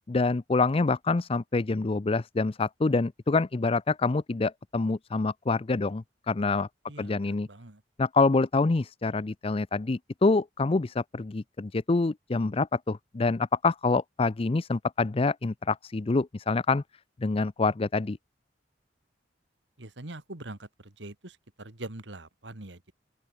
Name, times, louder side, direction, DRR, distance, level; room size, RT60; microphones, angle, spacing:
voice 1, 0.1-6.7 7.0-7.5 8.0-16.8 17.2-18.2, left 3 dB, 30° left, 0.5 m, -26 dB
voice 2, 6.9-7.8 19.8-22.9, right 2 dB, 80° right, 2.2 m, -43 dB
open air
head